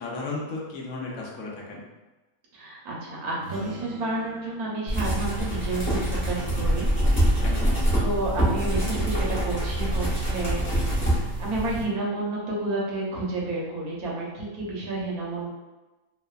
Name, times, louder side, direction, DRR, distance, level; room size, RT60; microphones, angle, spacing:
voice 1, 0.0-1.8 7.4-7.7, left 3 dB, 75° left, -2 dB, 1.0 m, -34 dB
voice 2, 2.5-6.9 8.0-15.5, right 2 dB, 85° right, -4 dB, 1.2 m, -30 dB
sound 1, 3.3-7.1, right 1 dB, 65° right, 0.5 m, -44 dB
sound 2, 4.9-11.8, right 1 dB, 15° left, 0.5 m, -25 dB
3.1 x 2.0 x 2.2 m, 1.1 s
omnidirectional pair, 1.6 m